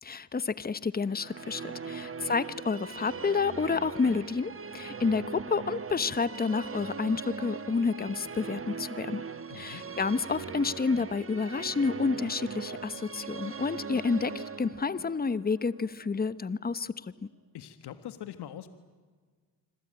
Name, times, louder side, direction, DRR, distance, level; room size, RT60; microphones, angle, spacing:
voice 1, 0.0-9.2 9.5-16.9, left 4 dB, 25° left, 15 dB, 1.0 m, -29 dB
Musical instrument, 1.0-16.4, right 5 dB, 35° right, 1.4 m, -40 dB
voice 2, 9.5-9.9 17.5-18.7, left 11 dB, 80° left, 10 dB, 1.6 m, -43 dB
25.5 x 25.5 x 9.0 m, 1.5 s
cardioid pair, 75°, 39 cm